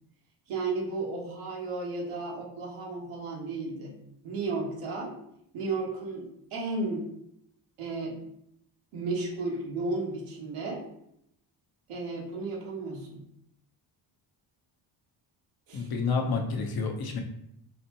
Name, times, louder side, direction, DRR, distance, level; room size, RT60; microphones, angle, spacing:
voice 1, 0.5-4.0 4.2-5.2 5.5-7.1 7.8-8.2 8.9-10.8 11.9-13.2 15.7-15.9, right 3 dB, 80° right, -3 dB, 1.2 m, -33 dB
voice 2, 15.7-17.2, left 4 dB, 45° left, 2 dB, 0.8 m, -29 dB
4.1 x 2.2 x 2.9 m, 0.76 s
cardioid pair, 70°, 50 cm